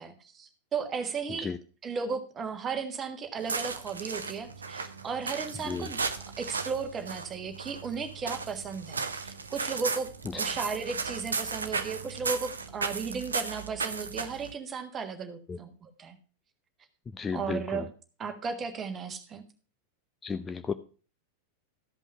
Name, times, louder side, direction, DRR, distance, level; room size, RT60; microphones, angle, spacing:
voice 1, 0.0-1.5 1.8-6.0 6.4-16.2 17.3-17.9 18.2-19.4, right 5 dB, 25° right, 7 dB, 1.5 m, -35 dB
sound 1, 3.4-14.5, right 4 dB, 75° right, 0.8 m, -35 dB
voice 2, 17.2-17.8 20.2-20.7, left 5 dB, 20° left, 11 dB, 0.5 m, -33 dB
13.5 x 5.4 x 5.5 m, 0.38 s
figure-of-eight pair, 90°, 0 cm